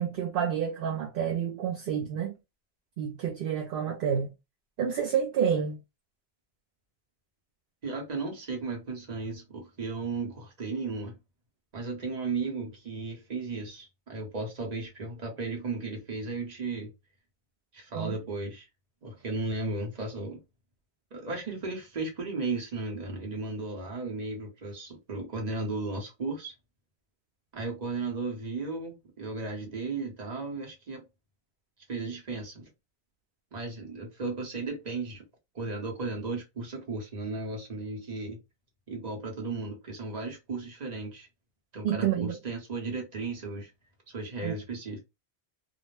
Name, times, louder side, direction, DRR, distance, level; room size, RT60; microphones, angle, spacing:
voice 1, 0.0-2.3 3.0-4.3 4.8-5.8 17.9-18.1 41.8-42.4 44.4-44.5, right 8 dB, 65° right, 0.7 m, -29 dB
voice 2, 7.8-11.1 11.7-16.9 17.7-18.7 19.0-20.4 21.1-26.5 27.5-31.0 31.9-32.7 33.5-35.2 35.5-38.4 38.9-41.3 41.7-43.7 44.1-45.0, right 3 dB, 40° right, 1.0 m, -35 dB
2.5 x 2.0 x 3.1 m
omnidirectional pair, 1.1 m